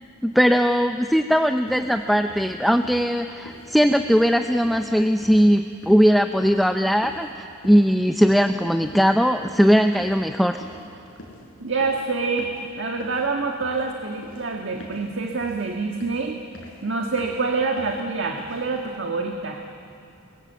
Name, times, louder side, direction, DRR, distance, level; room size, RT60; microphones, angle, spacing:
voice 1, 0.2-10.6, equal, ahead, 6 dB, 0.6 m, -19 dB
sound 1, 1.7-18.9, left 1 dB, 65° left, 5.2 m, -46 dB
voice 2, 11.6-12.5 12.8-16.4 16.8-19.6, right 4 dB, 60° right, 2 dB, 1.6 m, -26 dB
28.5 x 22.5 x 7.9 m, 2.5 s
head